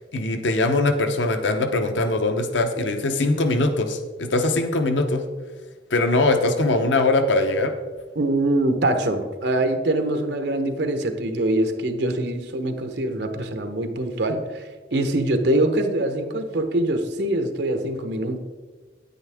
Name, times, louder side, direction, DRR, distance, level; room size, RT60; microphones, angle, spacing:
voice 1, 0.1-5.2 5.9-7.7, left 2 dB, 90° left, 7 dB, 0.8 m, -21 dB
voice 2, 8.2-18.4, right 1 dB, 65° right, 7 dB, 1.0 m, -24 dB
9.4 x 9.4 x 3.5 m, 1.4 s
head